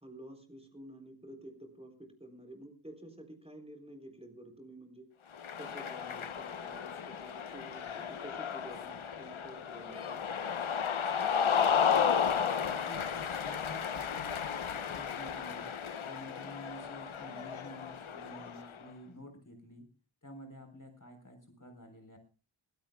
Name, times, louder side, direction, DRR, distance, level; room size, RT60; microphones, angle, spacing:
voice 1, 0.0-5.1 5.6-10.2, right 1 dB, 10° right, 5 dB, 3.7 m, -50 dB
Cheering, 5.3-18.8, left 7 dB, 85° left, 0.9 m, -33 dB
voice 2, 12.6-15.7 16.0-19.9 20.2-22.2, equal, 40° left, 5 dB, 3.9 m, -50 dB
23.0 x 16.0 x 2.3 m, 0.32 s
wide cardioid pair, 50°, 47 cm